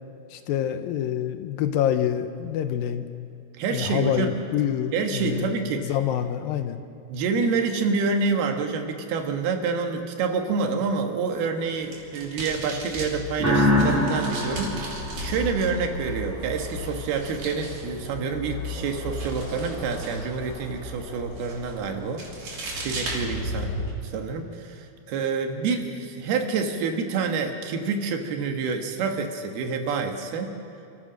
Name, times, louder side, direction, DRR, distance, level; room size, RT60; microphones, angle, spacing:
voice 1, 0.3-3.1 3.7-6.8, left 10 dB, 75° left, 9 dB, 2.5 m, -26 dB
voice 2, 3.6-4.3 4.9-5.9 7.1-22.2 22.8-23.7 24.0-30.5, right 5 dB, 85° right, 4 dB, 3.4 m, -27 dB
sound 1, 11.6-23.9, right 2 dB, 60° right, 4.8 m, -40 dB
sound 2, 12.8-23.9, left 1 dB, 25° left, 2.4 m, -36 dB
sound 3, 13.4-16.1, left 1 dB, 20° right, 3.7 m, -24 dB
27.5 x 15.5 x 6.3 m, 2.7 s
omnidirectional pair, 4.4 m